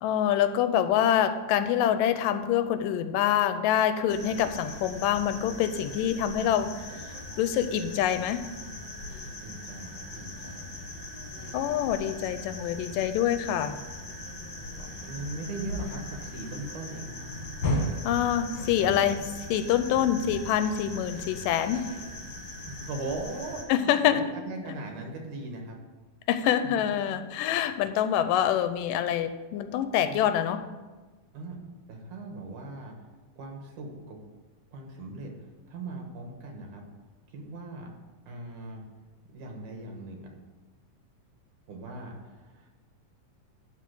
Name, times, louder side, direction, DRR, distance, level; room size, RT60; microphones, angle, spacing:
voice 1, 0.0-6.7 7.4-8.5 11.5-13.8 18.1-21.9 23.7-24.3 26.3-30.6, left 10 dB, 85° left, 10 dB, 2.2 m, -26 dB
sound 1, 4.1-23.6, left 1 dB, 50° left, 1.7 m, -38 dB
voice 2, 9.4-10.9 11.4-11.6 14.7-17.1 22.8-25.8 30.1-30.3 31.3-31.6 31.9-32.9 33.4-34.2 34.7-35.3 35.7-36.9 37.3-37.9 38.3-38.8 39.3-40.3 41.7-42.7, right 2 dB, 70° right, 2 dB, 2.7 m, -39 dB
12.0 x 4.0 x 7.6 m, 1.3 s
omnidirectional pair, 3.9 m